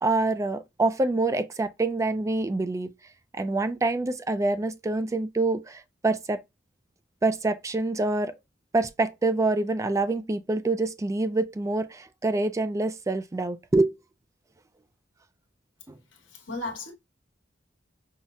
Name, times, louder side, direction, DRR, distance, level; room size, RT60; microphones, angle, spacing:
voice 1, 0.0-2.9 3.3-6.4 7.2-8.3 8.7-13.9 15.9-16.0, right 2 dB, 15° right, 0.3 m, -26 dB
voice 2, 16.1-16.9, left 2 dB, 75° left, 1.2 m, -36 dB
5.6 x 2.0 x 2.3 m
head